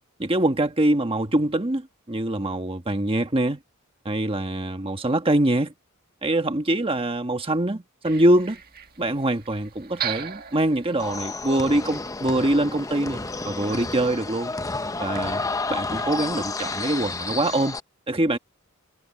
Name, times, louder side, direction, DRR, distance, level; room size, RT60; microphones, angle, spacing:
voice 1, 0.2-3.6 4.0-5.7 6.2-8.6 9.0-13.2 13.4-14.5 15.0-15.4 15.7-17.8 18.1-18.4, right 1 dB, 25° right, 1.4 m, -24 dB
sound 1, 8.0-17.7, right 8 dB, 45° right, 1.8 m, -41 dB
sound 2, 11.0-17.8, left 3 dB, 15° left, 0.6 m, -31 dB
head